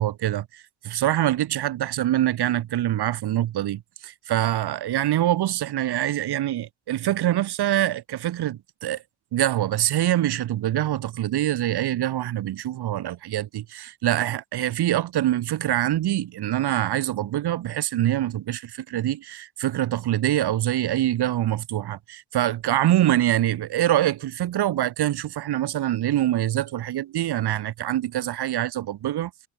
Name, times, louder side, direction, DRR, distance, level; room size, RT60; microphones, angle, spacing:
voice 1, 0.0-9.0 9.3-29.5, right 13 dB, 60° right, 2.8 m, -25 dB
cardioid pair, 125°, 44 cm